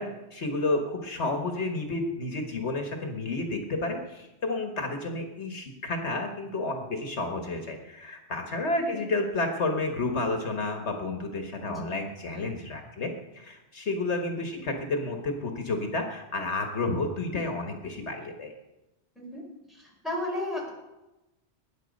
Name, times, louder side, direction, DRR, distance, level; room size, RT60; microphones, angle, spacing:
voice 1, 0.0-18.5, left 2 dB, 70° left, 4 dB, 1.7 m, -31 dB
voice 2, 19.7-20.7, left 1 dB, ahead, -3 dB, 4.6 m, -35 dB
20.5 x 9.6 x 5.2 m, 0.99 s
omnidirectional pair, 1.2 m